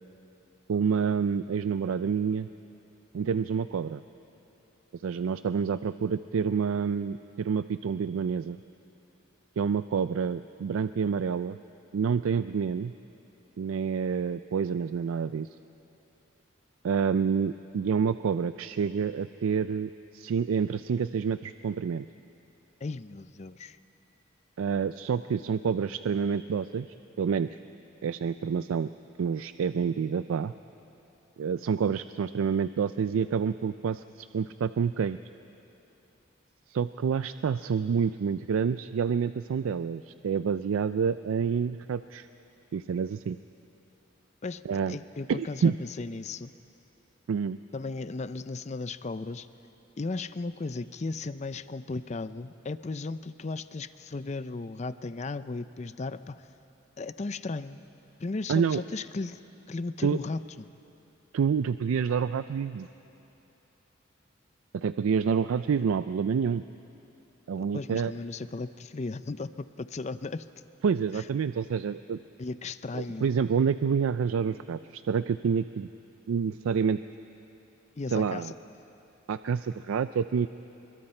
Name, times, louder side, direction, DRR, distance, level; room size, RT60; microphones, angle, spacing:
voice 1, 0.7-2.5 3.1-4.0 5.0-8.6 9.6-11.6 11.9-12.9 13.6-15.5 16.8-22.1 24.6-26.9 27.2-27.6 28.0-28.9 29.2-30.5 31.4-35.2 36.7-42.3 42.7-43.4 44.7-45.0 45.3-45.7 47.3-47.6 58.5-58.8 60.0-60.2 61.3-62.9 64.7-66.6 67.5-68.1 70.8-72.2 72.9-75.9 76.3-77.0 78.1-78.5 79.3-80.5, right 6 dB, 85° right, 13 dB, 0.4 m, -28 dB
voice 2, 22.8-23.8 44.4-44.6 44.9-46.5 47.7-49.5 50.0-56.5 57.0-57.8 58.2-59.4 59.7-60.7 67.7-70.4 71.1-71.2 72.4-73.3 78.0-78.5, left 3 dB, 35° left, 13 dB, 0.5 m, -36 dB
27.0 x 23.0 x 4.4 m, 2.9 s
head